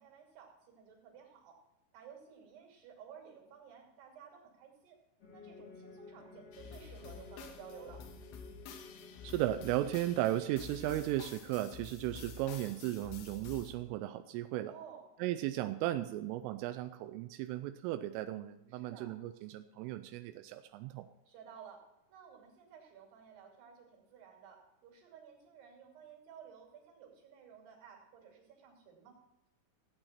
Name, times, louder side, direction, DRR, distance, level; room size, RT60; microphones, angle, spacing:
voice 1, 0.0-1.5 1.9-5.0 5.3-8.0 14.7-15.1 18.7-19.1 21.3-21.8 22.1-29.2, right 7 dB, 60° right, 0 dB, 4.4 m, -55 dB
sound 1, 5.2-11.0, left 4 dB, 45° left, 2.1 m, -54 dB
sound 2, 6.5-13.7, left 5 dB, 80° left, 3.6 m, -50 dB
voice 2, 9.2-14.7 15.2-21.1, right 14 dB, 90° right, 8 dB, 3.1 m, -36 dB
16.0 x 8.9 x 4.4 m, 0.94 s
omnidirectional pair, 5.7 m